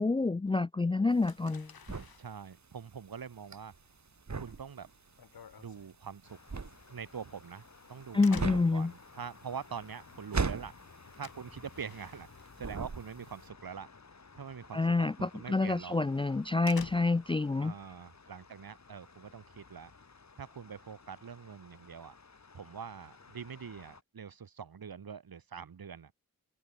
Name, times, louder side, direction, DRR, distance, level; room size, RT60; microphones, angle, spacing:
voice 1, 0.0-1.7 8.1-8.9 14.7-17.7, left 3 dB, 15° left, 0.4 m, -28 dB
sound 1, 1.1-12.3 12.6-13.4, right 4 dB, 50° right, 4.3 m, -39 dB
sound 2, 1.2-13.1 13.4-13.9 14.2-14.4 14.8-14.9 15.4-15.5 15.8-17.5, left 7 dB, 80° left, 4.0 m, -52 dB
voice 2, 2.2-3.7 4.4-4.9 5.6-6.4 6.9-7.6 7.9-8.4 8.7-10.7 11.2-12.3 12.6-13.9 14.4-16.0 17.6-19.9 20.4-22.1 22.5-26.1, right 6 dB, 75° right, 3.7 m, -44 dB
sound 3, 6.2-24.0, left 4 dB, 50° left, 5.2 m, -56 dB
open air
cardioid pair, 65°, 36 cm